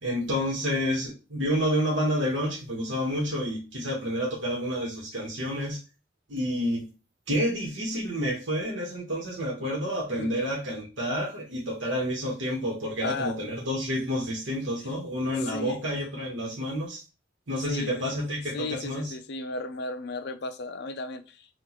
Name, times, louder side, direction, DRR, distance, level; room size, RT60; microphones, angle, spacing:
voice 1, 0.0-5.8 6.3-6.9 7.3-17.0 17.5-19.1, equal, 65° right, 1.3 m, -29 dB
voice 2, 13.0-13.3 15.4-15.8 17.7-18.1 18.5-21.5, left 3 dB, 55° left, 0.5 m, -35 dB
6.0 x 2.5 x 3.0 m
head